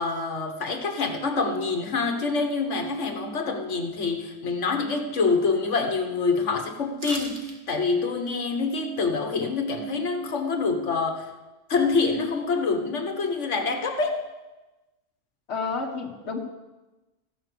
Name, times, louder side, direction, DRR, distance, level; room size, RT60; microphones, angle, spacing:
voice 1, 0.0-11.3 11.7-14.2, left 4 dB, 85° left, 5 dB, 1.6 m, -26 dB
sound 1, 7.0-7.6 7.9-8.0, right 2 dB, 60° right, 2.0 m, -37 dB
voice 2, 15.5-16.4, left 4 dB, 70° left, 2 dB, 1.6 m, -30 dB
14.5 x 11.0 x 6.8 m, 1.1 s
omnidirectional pair, 1.2 m